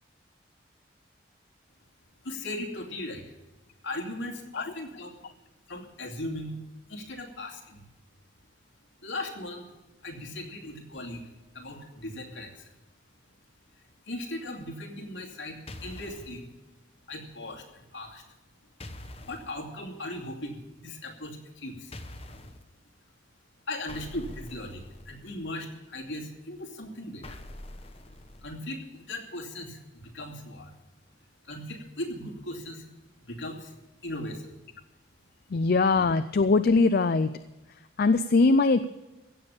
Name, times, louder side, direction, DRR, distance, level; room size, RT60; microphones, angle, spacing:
voice 1, 2.2-3.3 3.8-5.2 5.7-6.6 6.9-7.8 9.0-9.7 10.0-12.7 14.1-16.5 17.1-18.2 19.3-21.9 23.7-27.4 28.4-30.7 31.4-32.8 33.2-33.7 34.0-34.5, left 1 dB, 70° left, 0 dB, 2.6 m, -38 dB
sound 1, 15.7-16.4 18.8-19.5 21.9-22.6 23.9-25.3 27.2-28.6, left 1 dB, 30° left, 1.0 m, -44 dB
voice 2, 35.5-37.3 38.0-38.8, left 3 dB, 50° left, 12 dB, 0.4 m, -21 dB
16.0 x 7.2 x 8.6 m, 1.1 s
head